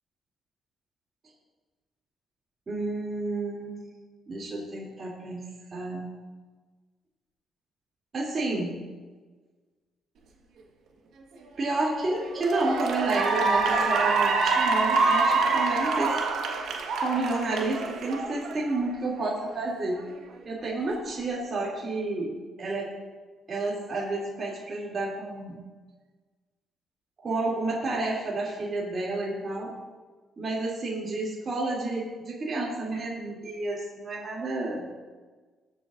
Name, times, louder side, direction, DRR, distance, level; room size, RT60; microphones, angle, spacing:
voice 1, 2.7-3.8 4.3-6.1 8.1-8.8 11.6-16.2 17.0-20.0 20.4-22.9 23.5-25.6 27.2-29.7 30.4-34.8, right 2 dB, 40° right, -5 dB, 2.7 m, -30 dB
Cheering / Applause, 11.6-11.9 12.3-18.8, right 4 dB, 75° right, 1.4 m, -25 dB
21.5 x 7.7 x 2.5 m, 1.4 s
cardioid pair, 90°, 0 cm